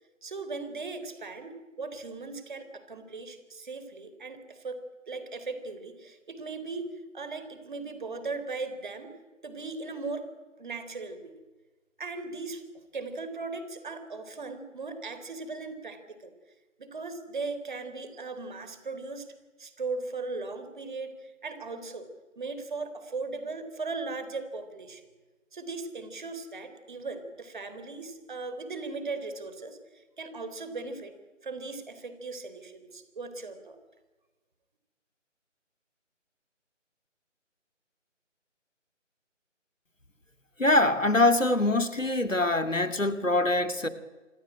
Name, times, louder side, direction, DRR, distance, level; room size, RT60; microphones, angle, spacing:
voice 1, 0.2-6.9 7.1-9.1 9.4-10.3 10.6-11.3 12.0-12.6 12.9-16.3 16.8-19.3 19.6-22.1 22.4-25.0 25.5-31.1 31.4-33.8, right 3 dB, 40° right, 10 dB, 3.9 m, -38 dB
voice 2, 40.6-43.9, left 2 dB, 85° left, 9 dB, 2.8 m, -24 dB
27.0 x 21.0 x 9.0 m, 1.2 s
figure-of-eight pair, 155°, 38 cm